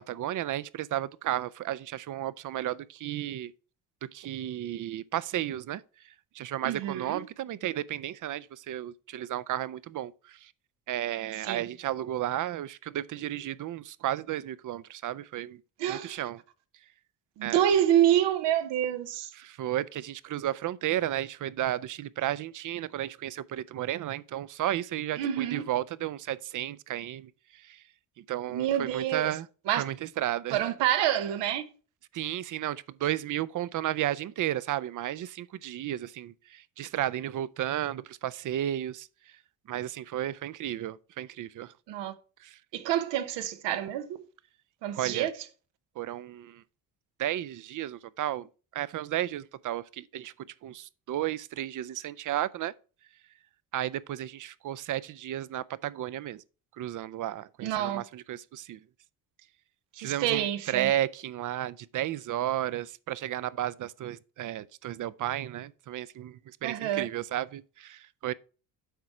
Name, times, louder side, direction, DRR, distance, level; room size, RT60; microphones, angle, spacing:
voice 1, 0.0-3.5 4.1-5.8 6.3-10.5 10.9-15.6 15.9-16.4 17.4-17.6 19.4-27.8 28.2-29.5 29.8-30.6 32.1-39.1 39.7-41.7 42.4-42.6 45.0-45.3 46.0-46.6 47.2-48.5 48.7-50.3 50.6-52.7 53.7-56.4 56.8-58.8 60.0-68.3, right 12 dB, 50° right, 0.5 m, -33 dB
voice 2, 6.6-7.2 11.4-11.6 15.8-16.2 17.4-19.3 25.2-25.6 28.5-29.3 29.7-29.8 30.5-31.6 41.9-42.1 42.7-44.2 44.8-45.3 57.6-58.0 59.9-60.9 66.6-67.1, right 11 dB, 90° right, 0.9 m, -27 dB
8.0 x 4.8 x 4.3 m
cardioid pair, 90°, 42 cm